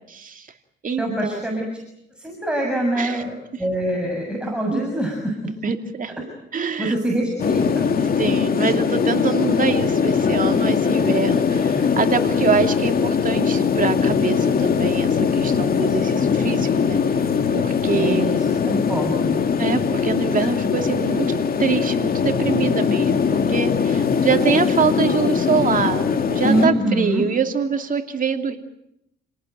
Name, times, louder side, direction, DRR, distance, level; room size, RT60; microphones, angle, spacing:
voice 1, 0.1-0.5 0.8-1.4 2.9-3.2 3.5-3.6 4.7-4.8 5.6-6.1 6.5-7.0 8.0-17.3 17.5-18.3 19.6-28.6, right 6 dB, 45° right, 6 dB, 2.7 m, -25 dB
voice 2, 1.0-1.7 2.2-3.3 3.6-5.5 6.8-7.9 17.9-19.4 26.4-27.2, right 1 dB, 5° right, 1 dB, 7.2 m, -24 dB
sound 1, 7.4-26.7, left 6 dB, 50° left, 2.3 m, -21 dB
30.0 x 18.5 x 9.3 m, 0.81 s
cardioid pair, 90°, 20 cm